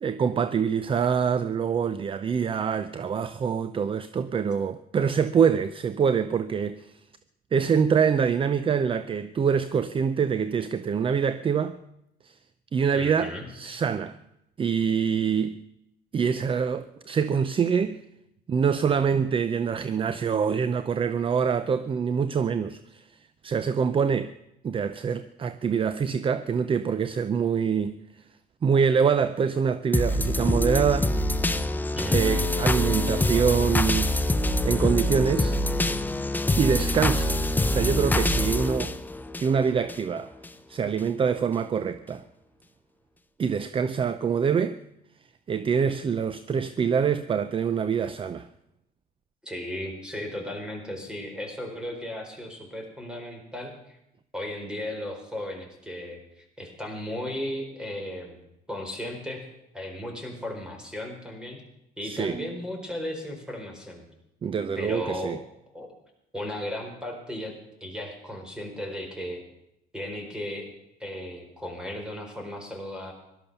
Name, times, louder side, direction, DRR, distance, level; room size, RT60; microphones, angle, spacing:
voice 1, 0.0-6.9 7.5-11.8 12.2-12.3 12.7-14.2 14.6-15.6 16.1-18.0 18.5-23.1 23.4-24.3 24.6-28.0 28.6-31.1 32.1-34.1 34.6-35.6 36.6-37.4 37.7-38.9 39.4-40.3 40.7-42.2 43.4-44.8 45.5-48.5 62.0-62.4 64.4-65.4, right 6 dB, 30° right, 0.6 m, -25 dB
voice 2, 12.9-13.5 31.9-32.5 49.4-54.0 54.3-58.4 58.7-59.5 59.7-61.6 62.0-64.1 64.7-65.4 65.7-65.9 66.3-67.5 67.8-69.4 69.9-70.7 71.0-73.1, left 1 dB, 5° right, 4.6 m, -35 dB
sound 1, 29.9-40.0 40.4-40.5, left 1 dB, 10° left, 0.8 m, -25 dB
17.0 x 12.5 x 6.9 m
cardioid pair, 110°, 17 cm